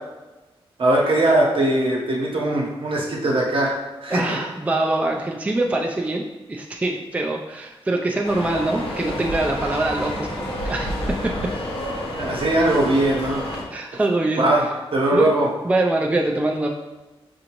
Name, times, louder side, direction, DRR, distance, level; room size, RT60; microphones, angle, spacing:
voice 1, 0.8-3.7 4.0-4.4 12.2-13.4 14.4-14.7 14.9-15.5, right 1 dB, 60° right, -2 dB, 0.9 m, -20 dB
voice 2, 4.1-6.2 6.5-11.3 13.7-14.5 15.1-15.3 15.6-16.7, right 2 dB, 15° right, 0 dB, 0.3 m, -24 dB
sound 1, 8.2-13.6, left 1 dB, 70° left, 0.8 m, -29 dB
4.7 x 2.6 x 2.9 m, 1.1 s
cardioid pair, 75°, 10 cm